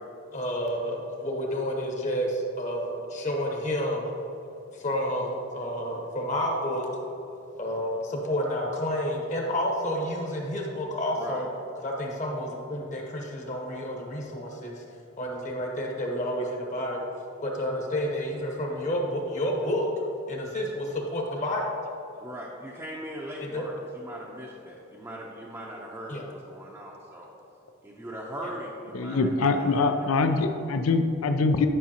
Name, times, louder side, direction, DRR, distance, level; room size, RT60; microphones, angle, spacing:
voice 1, 0.3-4.0 4.7-6.9 7.5-11.5 11.8-14.7 15.2-17.1 17.4-19.9 20.3-21.7 23.5-23.6 26.1-26.2, equal, 35° left, 0 dB, 1.0 m, -30 dB
voice 2, 22.2-27.3 27.8-29.8 30.3-30.5, equal, 15° right, -5 dB, 0.6 m, -40 dB
voice 3, 28.9-31.7, left 3 dB, 85° left, 7 dB, 0.5 m, -24 dB
11.0 x 5.7 x 2.9 m, 2.8 s
head